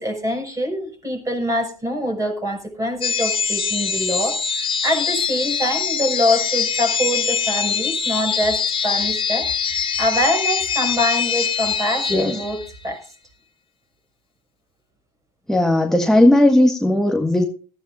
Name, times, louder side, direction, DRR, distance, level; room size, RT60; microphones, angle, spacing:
voice 1, 0.0-13.1, equal, 15° right, 6.4 m, -24 dB
sound 1, 3.0-12.8, left 6 dB, 25° left, 2.5 m, -23 dB
voice 2, 15.5-17.4, left 1 dB, ahead, 1.6 m, -16 dB
18.5 x 14.5 x 2.6 m
hypercardioid pair, 85°, 20 cm